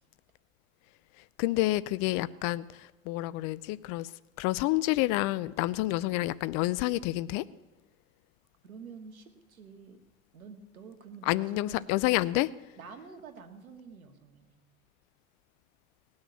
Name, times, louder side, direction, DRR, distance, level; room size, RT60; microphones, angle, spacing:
voice 1, 1.4-4.1 4.4-7.4 11.3-12.5, left 18 dB, 40° left, 18 dB, 0.5 m, -29 dB
voice 2, 8.6-10.0 10.3-12.0 12.8-14.6, right 5 dB, 80° right, 6 dB, 2.0 m, -48 dB
19.0 x 6.4 x 8.2 m, 1.1 s
hypercardioid pair, 85°, 42 cm